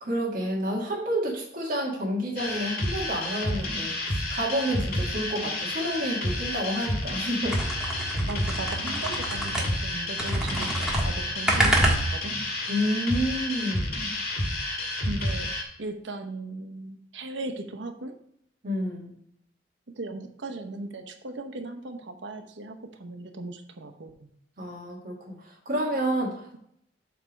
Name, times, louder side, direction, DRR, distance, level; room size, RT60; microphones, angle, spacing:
voice 1, 0.0-7.6 12.7-14.1 18.6-19.2 24.6-26.6, equal, 50° right, -3 dB, 1.7 m, -29 dB
sound 1, 2.4-15.6, left 1 dB, 60° left, 1.7 m, -30 dB
sound 2, 7.4-9.9 10.2-12.4, right 1 dB, 5° right, 1.4 m, -27 dB
voice 2, 8.0-12.3 15.1-15.5 15.8-18.1 20.0-24.3, right 2 dB, 85° right, 6 dB, 0.9 m, -37 dB
7.9 x 3.4 x 5.1 m, 0.70 s
head